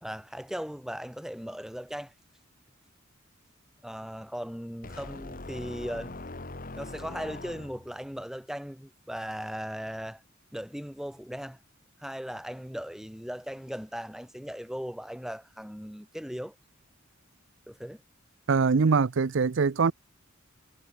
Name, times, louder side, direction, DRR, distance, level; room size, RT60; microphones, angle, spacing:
voice 1, 0.0-2.1 3.8-6.1 6.8-10.2 10.5-11.6 12.0-16.6 17.7-18.0, equal, ahead, 1.0 m, -38 dB
sound 1, 4.8-8.0, left 2 dB, 45° left, 2.0 m, -41 dB
voice 2, 18.5-19.9, right 5 dB, 60° right, 0.5 m, -23 dB
head